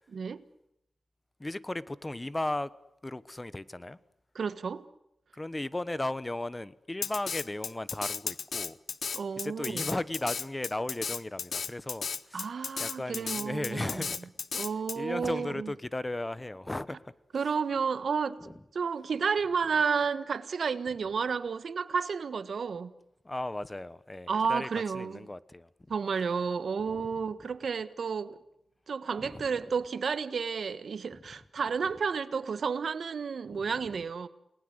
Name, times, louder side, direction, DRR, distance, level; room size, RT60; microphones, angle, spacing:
voice 1, 0.1-0.4 4.3-4.8 9.1-9.9 12.3-14.1 14.5-15.7 17.3-22.9 24.3-25.3 25.9-28.4 28.9-34.3, right 5 dB, 75° right, 1.4 m, -31 dB
voice 2, 1.4-2.7 3.0-4.0 5.4-8.8 9.4-12.5 12.8-14.3 14.9-17.0 18.4-18.6 23.2-24.7 24.9-25.7 27.0-27.1 29.2-29.4 33.5-34.0, left 2 dB, 20° left, 1.1 m, -36 dB
Drum kit, 7.0-15.0, left 5 dB, 70° left, 0.9 m, -34 dB
29.0 x 20.0 x 8.0 m
cardioid pair, 70°, 0 cm